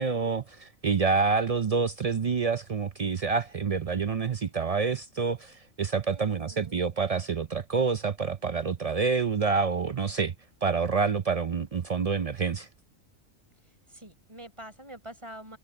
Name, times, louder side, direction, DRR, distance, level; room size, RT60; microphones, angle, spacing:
voice 1, 0.0-10.3 10.6-12.7, right 5 dB, 65° right, 0.3 m, -27 dB
voice 2, 6.1-6.8 13.9-15.6, right 1 dB, 20° right, 5.2 m, -46 dB
omnidirectional pair, 1.4 m